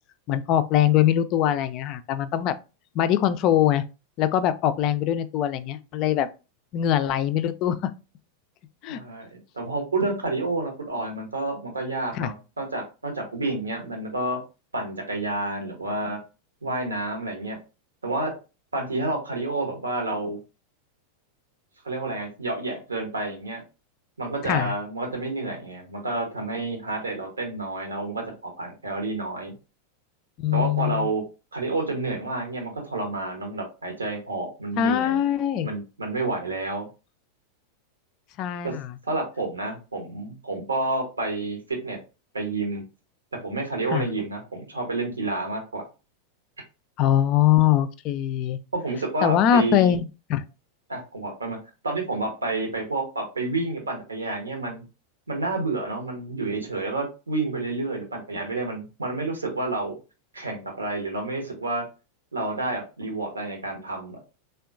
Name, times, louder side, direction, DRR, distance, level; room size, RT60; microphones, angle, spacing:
voice 1, 0.3-2.5 3.0-3.8 4.2-6.3 6.7-7.9 8.8-9.0 12.1-12.3 24.4-24.7 30.4-31.1 34.8-35.7 38.4-38.9 43.9-44.1 47.0-48.6 49.2-50.4, left 11 dB, 40° left, 0.3 m, -22 dB
voice 2, 8.9-14.4 14.7-16.2 16.6-17.6 18.0-18.4 18.7-20.4 21.8-23.6 24.2-29.5 30.5-31.3 31.5-35.2 35.6-36.9 38.6-38.8 39.0-42.0 42.3-42.8 43.4-45.9 48.7-50.0 50.9-51.6 51.8-54.8 55.3-59.9 60.3-61.8 62.3-64.2, right 2 dB, 75° right, 0.8 m, -29 dB
3.6 x 2.2 x 2.4 m
figure-of-eight pair, 90°, 0 cm